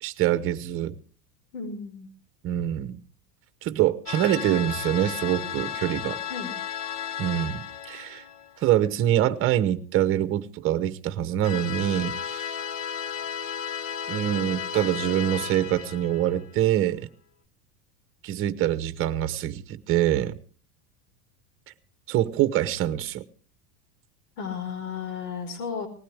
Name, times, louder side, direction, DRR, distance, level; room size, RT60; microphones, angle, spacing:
voice 1, 0.0-1.0 2.4-3.0 3.6-6.2 7.2-8.2 8.6-12.5 14.1-17.1 18.2-20.4 22.1-23.2, right 12 dB, 30° right, 1.0 m, -25 dB
voice 2, 1.5-2.1 6.3-6.5 24.4-25.9, left 6 dB, 90° left, 4.8 m, -34 dB
sound 1, 4.1-8.6 11.4-16.7, left 8 dB, 65° left, 1.3 m, -34 dB
19.5 x 16.5 x 3.5 m
supercardioid pair, 165°, 44 cm